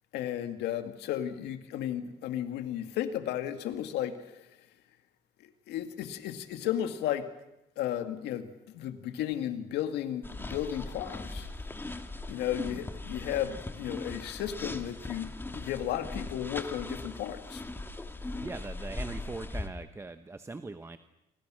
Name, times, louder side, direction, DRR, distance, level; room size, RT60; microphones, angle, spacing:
voice 1, 0.1-4.6 5.4-7.3 7.8-11.5 12.3-17.6, left 11 dB, 80° left, 8 dB, 2.3 m, -34 dB
sound 1, 10.2-19.7, left 2 dB, 15° left, 2.0 m, -39 dB
voice 2, 18.4-21.0, right 3 dB, 15° right, 9 dB, 1.0 m, -41 dB
28.5 x 25.0 x 6.4 m, 0.86 s
cardioid pair, 110°, 17 cm